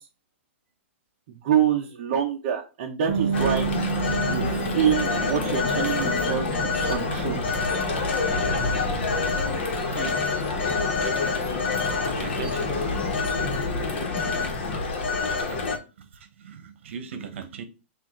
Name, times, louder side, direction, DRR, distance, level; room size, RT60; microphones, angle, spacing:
voice 1, 1.3-3.7 4.3-6.5 6.7-7.4, right 9 dB, 40° right, 0 dB, 0.7 m, -26 dB
sound 1, 3.0-14.8, left 5 dB, 30° left, 0.6 m, -36 dB
Bass guitar, 3.1-9.3, right 7 dB, 90° right, 0.4 m, -32 dB
Telephone, 3.3-15.8, left 4 dB, 55° left, 1.1 m, -27 dB
voice 2, 12.0-12.8 16.4-17.6, right 6 dB, 65° right, 8 dB, 0.9 m, -37 dB
6.0 x 2.5 x 3.1 m, 0.31 s
supercardioid pair, 175°, 7 cm